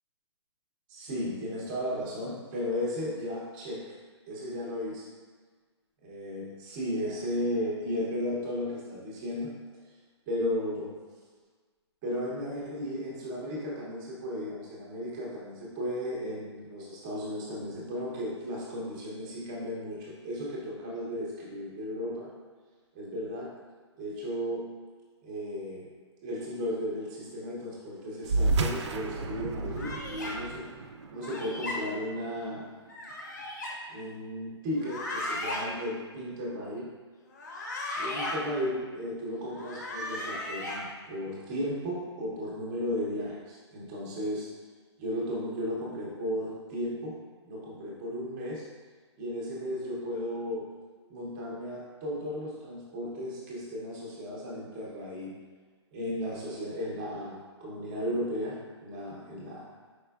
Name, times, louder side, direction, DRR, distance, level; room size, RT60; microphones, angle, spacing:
voice 1, 0.9-3.9 4.3-5.1 6.0-9.5 10.3-10.9 12.0-22.3 22.9-23.5 24.0-24.7 25.2-25.9 26.2-30.6 31.1-32.7 33.9-36.9 38.0-44.5 45.0-47.2 47.4-48.6 49.2-50.7 51.1-55.4 55.9-59.7, equal, 15° right, -5 dB, 0.6 m, -35 dB
sound 1, 28.2-33.1, right 3 dB, 75° right, 0.4 m, -32 dB
sound 2, 29.7-30.3 31.2-31.8 32.9-33.7 34.7-35.6 37.3-38.4 39.5-40.8, left 2 dB, 40° left, 0.7 m, -36 dB
4.8 x 4.3 x 2.3 m, 1.4 s
hypercardioid pair, 175°, 15 cm